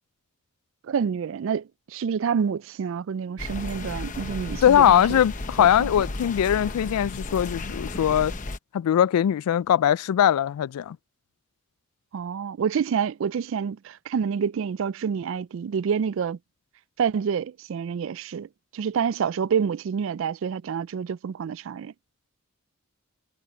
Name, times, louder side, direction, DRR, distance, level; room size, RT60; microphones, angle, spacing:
voice 1, 0.9-5.2 5.6-5.9 12.1-16.4 17.0-18.5 18.7-21.9, right 7 dB, 60° right, 0.3 m, -28 dB
sound 1, 3.4-8.6, left 2 dB, 35° left, 0.9 m, -34 dB
voice 2, 4.6-8.3 8.7-11.0, left 10 dB, 85° left, 0.3 m, -21 dB
head